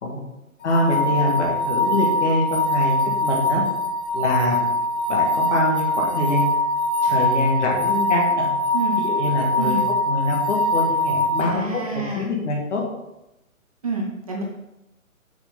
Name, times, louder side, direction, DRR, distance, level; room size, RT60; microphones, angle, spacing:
sound 1, 0.6-11.4, left 1 dB, 75° left, 2.1 m, -22 dB
voice 1, 0.6-3.6 4.1-4.7 5.1-6.5 7.0-8.5 9.0-12.8, left 1 dB, 55° left, -1 dB, 2.3 m, -24 dB
voice 2, 11.4-12.3 13.8-14.4, right 3 dB, 25° right, 0 dB, 0.6 m, -28 dB
6.3 x 6.0 x 3.9 m, 0.92 s
hypercardioid pair, 150°, 43 cm